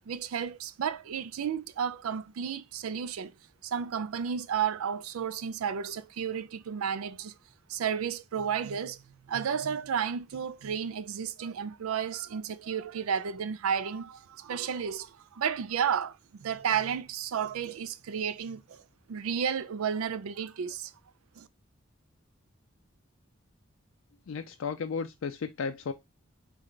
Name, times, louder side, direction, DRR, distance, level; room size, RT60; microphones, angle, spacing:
voice 1, 0.1-3.3 3.6-7.4 7.7-9.0 9.3-18.8 19.1-20.9 21.4-21.5, right 7 dB, 90° right, 0.4 m, -32 dB
voice 2, 24.3-25.9, left 5 dB, 70° left, 0.4 m, -34 dB
3.3 x 3.2 x 3.8 m
head